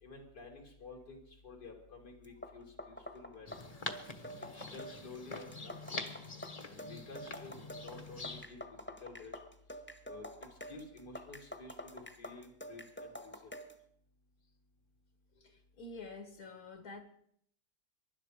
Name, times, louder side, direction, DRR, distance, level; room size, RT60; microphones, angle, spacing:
voice 1, 0.0-3.7 4.4-6.0 6.6-7.6 7.8-9.4 10.0-13.5, left 3 dB, 85° left, 1 dB, 3.3 m, -51 dB
sound 1, 2.2-13.8, equal, 10° left, 1.2 m, -48 dB
sound 2, 3.5-8.5, left 3 dB, 25° left, 1.1 m, -45 dB
voice 2, 15.4-17.0, left 3 dB, 65° left, 7 dB, 2.2 m, -48 dB
23.5 x 11.5 x 5.0 m, 0.68 s
omnidirectional pair, 1.7 m